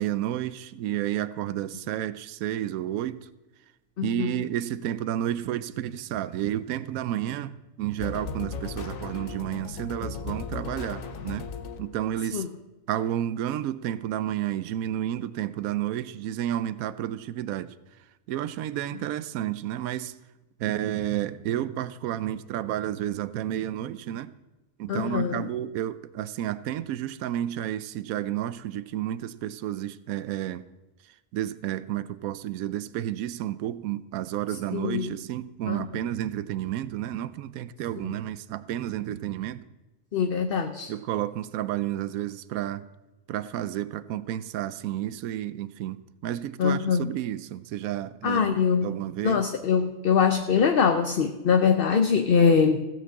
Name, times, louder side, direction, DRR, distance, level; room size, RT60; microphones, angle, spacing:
voice 1, 0.0-3.3 4.0-11.5 11.8-12.4 12.9-17.7 18.3-20.1 20.6-24.3 24.8-30.6 31.3-39.6 40.9-42.8 43.3-49.4, right 12 dB, 85° right, 1.0 m, -31 dB
voice 2, 4.0-4.3 12.3-12.5 24.9-25.5 34.7-35.1 35.7-35.9 38.0-38.1 40.1-40.9 46.6-47.1 48.2-48.9 49.2-52.8, left 6 dB, 50° left, 0.8 m, -23 dB
sound 1, 8.0-12.1, left 5 dB, 75° left, 1.3 m, -36 dB
16.0 x 6.1 x 7.4 m
omnidirectional pair, 1.4 m